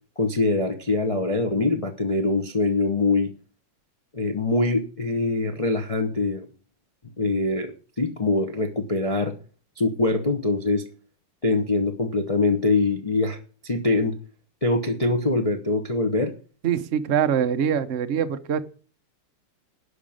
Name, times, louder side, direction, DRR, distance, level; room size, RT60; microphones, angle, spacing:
voice 1, 0.2-3.3 4.1-6.5 7.2-9.3 9.8-10.8 11.4-14.2 14.6-16.3, left 2 dB, 60° left, 4 dB, 0.3 m, -23 dB
voice 2, 16.6-18.6, right 8 dB, 85° right, 8 dB, 0.5 m, -23 dB
11.5 x 5.3 x 8.8 m, 0.39 s
omnidirectional pair, 2.4 m